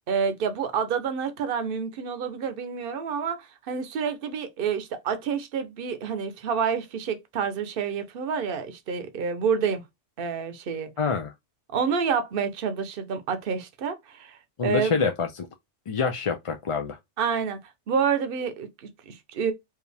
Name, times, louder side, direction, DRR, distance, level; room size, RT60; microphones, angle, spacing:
voice 1, 0.1-9.8 10.2-10.9 11.7-14.4 14.6-15.0 17.2-17.6 17.9-19.5, right 6 dB, 55° right, 0.9 m, -28 dB
voice 2, 11.0-11.3 14.6-15.5 15.9-17.0, left 5 dB, 45° left, 0.4 m, -26 dB
4.7 x 2.5 x 3.3 m
omnidirectional pair, 1.2 m